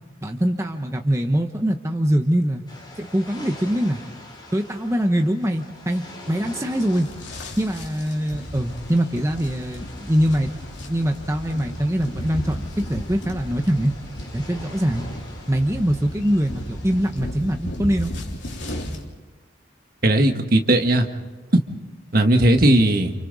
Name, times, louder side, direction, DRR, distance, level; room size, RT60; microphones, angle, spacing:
voice 1, 0.2-2.6 3.0-4.0 4.5-7.1 7.6-10.5 10.9-13.9 14.3-15.0 15.5-18.1, equal, 15° right, 4 dB, 1.0 m, -23 dB
sound 1, 2.7-17.0, left 1 dB, 25° left, 5.8 m, -45 dB
sound 2, 6.6-19.0, equal, 70° left, 3.5 m, -35 dB
voice 2, 20.0-21.1 21.5-21.6 22.1-23.1, right 1 dB, 50° right, 5 dB, 1.7 m, -17 dB
30.0 x 28.5 x 4.1 m, 1.2 s
head